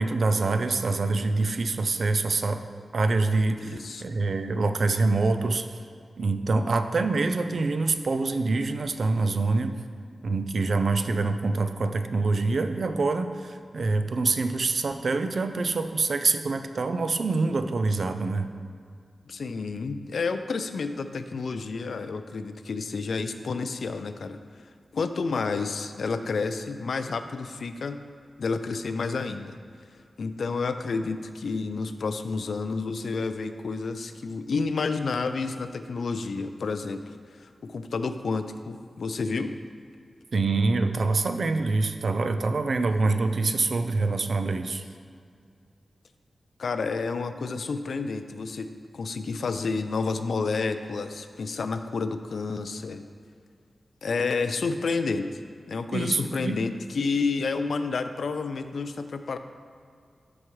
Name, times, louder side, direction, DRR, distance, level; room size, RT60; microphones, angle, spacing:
voice 1, 0.0-2.6 2.9-5.7 6.2-9.8 10.2-18.5 40.3-44.8 55.9-56.6, right 3 dB, 55° right, 8 dB, 0.4 m, -25 dB
voice 2, 3.6-4.0 19.3-24.4 24.9-28.0 28.4-29.6 30.2-37.0 37.3-39.6 46.6-53.0 54.0-55.4 55.7-59.4, left 4 dB, 75° left, 9 dB, 0.4 m, -30 dB
13.0 x 4.8 x 3.1 m, 2.2 s
wide cardioid pair, 150°, 0 cm